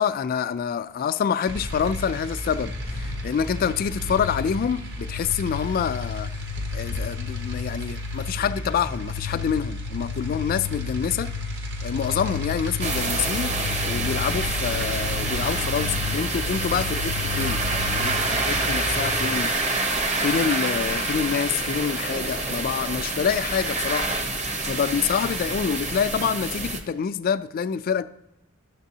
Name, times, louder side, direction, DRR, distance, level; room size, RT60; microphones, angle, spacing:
voice 1, 0.0-6.3 6.7-11.4 11.8-19.9 20.2-24.1 24.7-28.0, left 7 dB, 45° left, 0.3 m, -27 dB
sound 1, 1.5-19.2, left 3 dB, 55° right, 1.0 m, -31 dB
sound 2, 12.8-26.8, right 2 dB, 35° right, 0.8 m, -27 dB
11.5 x 6.7 x 2.7 m
head